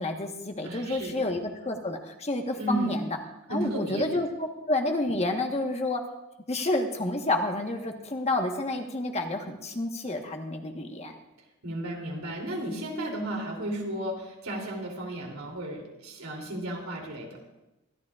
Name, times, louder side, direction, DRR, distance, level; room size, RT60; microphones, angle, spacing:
voice 1, 0.0-3.0 3.5-6.0 6.5-11.1, left 2 dB, 30° left, 3 dB, 1.3 m, -29 dB
voice 2, 0.6-1.3 2.6-3.0 3.5-4.0 11.6-17.4, right 1 dB, 85° right, 0 dB, 3.1 m, -34 dB
24.0 x 12.5 x 2.5 m, 1.0 s
head